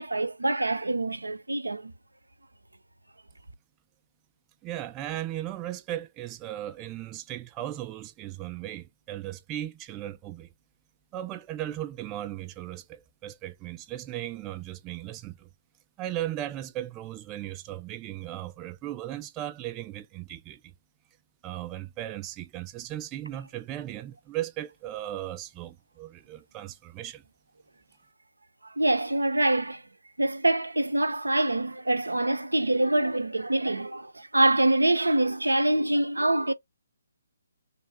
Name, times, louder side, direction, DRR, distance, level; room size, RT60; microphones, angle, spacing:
voice 1, 0.0-1.9 28.8-29.8 30.2-36.5, right 1 dB, 80° right, 0.5 m, -25 dB
voice 2, 4.6-10.5 11.1-15.5 16.0-20.7 21.4-27.2, right 13 dB, 20° right, 0.3 m, -37 dB
3.3 x 2.3 x 4.0 m
figure-of-eight pair, 140°, 0 cm